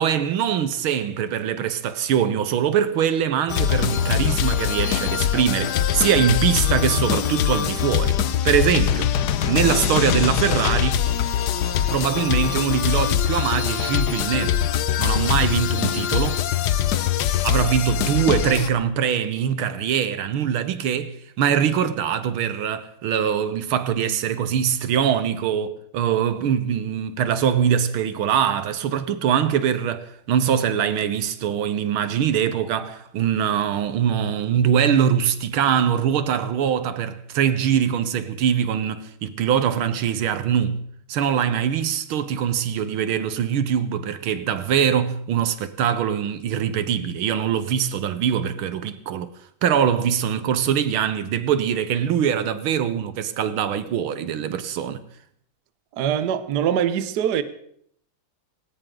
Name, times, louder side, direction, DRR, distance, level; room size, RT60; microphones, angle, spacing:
voice 1, 0.0-8.2 8.5-9.1 9.4-11.0 11.9-14.6 15.0-16.4 17.4-40.8 41.1-49.3 49.6-55.0, right 8 dB, 75° right, 1.8 m, -23 dB
sound 1, 3.5-18.7, left 9 dB, 60° left, 1.1 m, -22 dB
voice 2, 55.9-57.4, right 9 dB, 60° right, 1.3 m, -23 dB
19.0 x 18.0 x 3.8 m
omnidirectional pair, 2.4 m